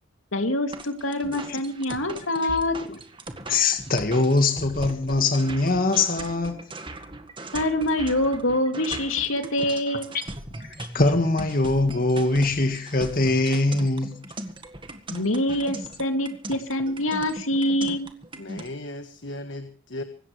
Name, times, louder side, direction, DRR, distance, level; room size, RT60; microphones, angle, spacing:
voice 1, 0.3-2.8 7.5-10.1 15.1-18.1, left 1 dB, 85° left, 2.7 m, -25 dB
sound 1, 0.7-18.7, right 2 dB, 25° right, 1.8 m, -39 dB
voice 2, 3.5-6.6 10.6-14.2, left 2 dB, 45° left, 1.8 m, -22 dB
voice 3, 18.4-20.0, left 1 dB, 65° left, 1.6 m, -36 dB
25.0 x 13.0 x 3.3 m
head